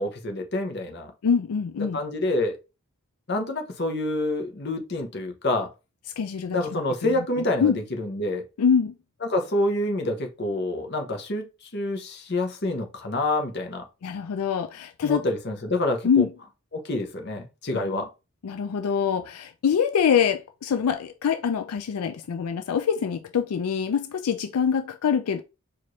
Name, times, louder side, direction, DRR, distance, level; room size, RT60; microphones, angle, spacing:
voice 1, 0.0-1.1 1.9-2.6 3.3-5.7 6.5-8.4 9.3-13.8 15.0-16.2 16.7-18.1, left 1 dB, 50° left, 0.8 m, -27 dB
voice 2, 1.2-2.0 6.2-7.8 8.6-9.0 14.0-15.2 16.0-16.3 17.7-18.0 18.4-25.4, left 7 dB, 90° left, 0.4 m, -25 dB
4.4 x 2.5 x 3.1 m
head